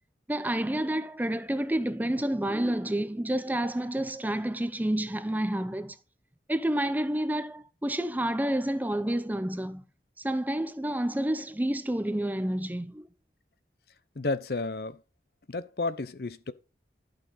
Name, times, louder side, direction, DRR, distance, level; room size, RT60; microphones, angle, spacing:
voice 1, 0.3-6.0 6.5-9.8 10.2-13.1, right 1 dB, 10° right, 0.5 m, -29 dB
voice 2, 14.2-15.0 15.5-16.5, left 3 dB, 60° left, 0.7 m, -32 dB
11.5 x 6.5 x 4.0 m
head